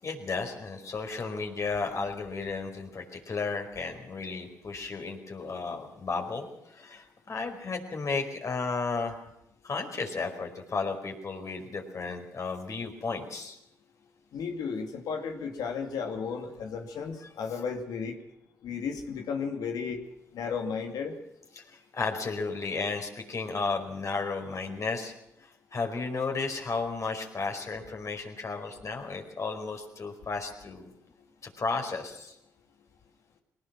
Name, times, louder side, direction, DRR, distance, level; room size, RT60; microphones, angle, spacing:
voice 1, 0.0-9.2 9.6-13.6 21.5-25.1 25.4-30.9 31.4-32.4, left 4 dB, 50° left, 4 dB, 5.0 m, -33 dB
voice 2, 14.3-18.2 18.6-20.0 20.3-21.1, left 6 dB, 75° left, 4 dB, 2.6 m, -34 dB
21.0 x 18.5 x 7.5 m, 0.82 s
supercardioid pair, 50°, 7 cm